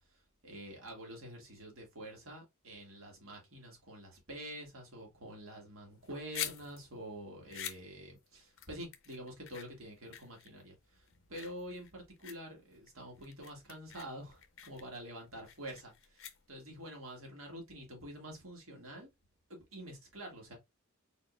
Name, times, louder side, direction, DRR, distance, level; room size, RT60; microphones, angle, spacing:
voice 1, 0.0-19.1 19.5-20.5, right 1 dB, 80° right, 1.9 m, -47 dB
sound 1, 5.9-16.8, left 10 dB, 70° left, 0.7 m, -47 dB
4.1 x 3.7 x 2.4 m
head